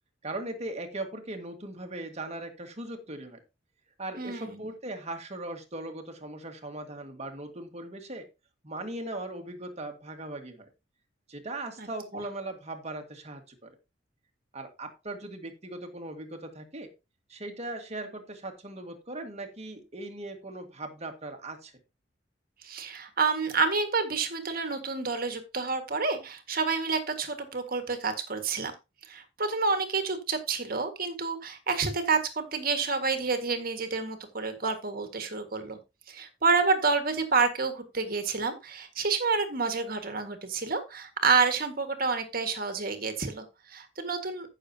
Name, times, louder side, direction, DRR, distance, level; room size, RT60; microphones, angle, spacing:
voice 1, 0.2-3.4 4.0-8.3 8.6-10.7 11.3-13.7 14.5-16.9 17.3-21.7, right 2 dB, 35° right, 5 dB, 1.9 m, -39 dB
voice 2, 4.2-4.7 11.8-11.9 12.1-12.3 22.6-28.7 29.0-35.8 36.1-44.5, right 4 dB, 50° right, 7 dB, 1.9 m, -29 dB
15.0 x 6.7 x 2.9 m, 0.26 s
head